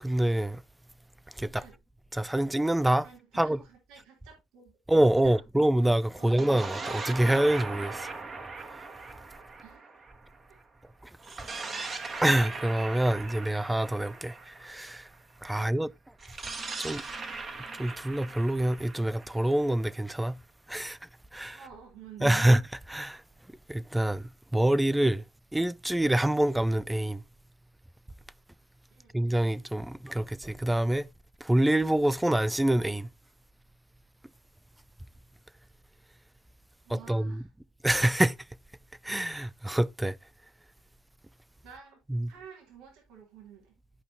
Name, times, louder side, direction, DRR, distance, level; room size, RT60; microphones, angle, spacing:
voice 1, 0.0-0.6 1.4-1.6 2.1-3.1 3.4-3.6 4.9-8.1 12.2-15.1 15.4-15.9 16.8-17.0 17.7-20.4 20.7-21.0 21.3-21.6 22.2-22.6 22.9-23.2 23.7-25.2 25.5-27.2 29.1-31.1 31.4-33.1 36.9-37.4 37.8-38.4 39.0-40.2 42.1-42.3, right 1 dB, 5° right, 0.4 m, -26 dB
voice 2, 3.0-4.7 5.2-5.4 6.2-6.4 9.6-10.0 10.5-10.6 21.5-22.5 28.9-29.1 36.8-37.5 41.6-42.0 42.3-43.8, right 7 dB, 70° right, 3.1 m, -51 dB
sound 1, 6.2-10.6 11.2-15.1 16.2-20.0, right 3 dB, 35° right, 1.6 m, -39 dB
12.0 x 5.3 x 2.7 m
hypercardioid pair, 75°, 0 cm